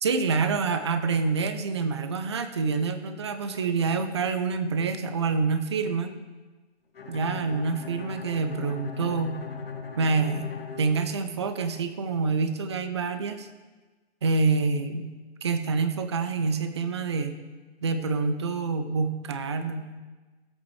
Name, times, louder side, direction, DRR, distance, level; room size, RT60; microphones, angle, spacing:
voice 1, 0.0-6.1 7.1-9.4 10.0-13.5 14.2-15.1 15.4-17.3 17.8-19.9, right 4 dB, 25° right, 9 dB, 0.4 m, -27 dB
Bowed string instrument, 6.9-11.8, left 5 dB, 55° left, 1.2 m, -39 dB
15.5 x 8.1 x 3.3 m, 1.3 s
figure-of-eight pair, 135°, 34 cm